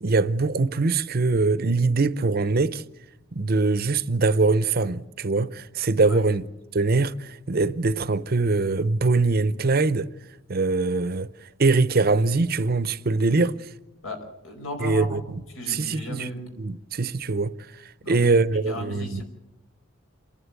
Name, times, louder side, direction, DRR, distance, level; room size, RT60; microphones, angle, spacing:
voice 1, 0.0-2.8 3.3-6.5 6.7-10.1 10.5-13.7 14.8-15.2 15.7-16.3 16.6-17.5 18.1-19.2, right 3 dB, 45° right, 0.7 m, -23 dB
voice 2, 14.0-15.2 15.5-16.4 18.0-19.2, left 1 dB, 90° left, 5.1 m, -36 dB
28.0 x 11.5 x 8.3 m
head